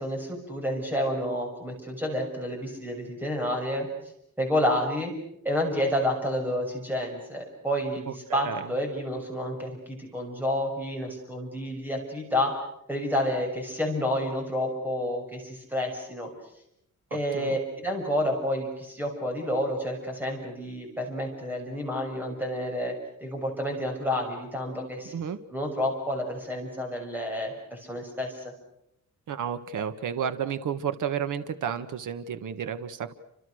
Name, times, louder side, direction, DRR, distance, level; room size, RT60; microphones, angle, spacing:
voice 1, 0.0-3.9 4.4-5.1 5.4-12.6 12.9-16.3 17.1-22.9 23.2-25.1 25.5-28.5, left 1 dB, 5° right, 2 dB, 6.5 m, -29 dB
voice 2, 8.1-8.7 17.1-17.6 25.1-25.4 29.3-33.1, right 8 dB, 70° right, 10 dB, 1.6 m, -32 dB
29.5 x 27.0 x 6.5 m, 0.80 s
wide cardioid pair, 180°, 32 cm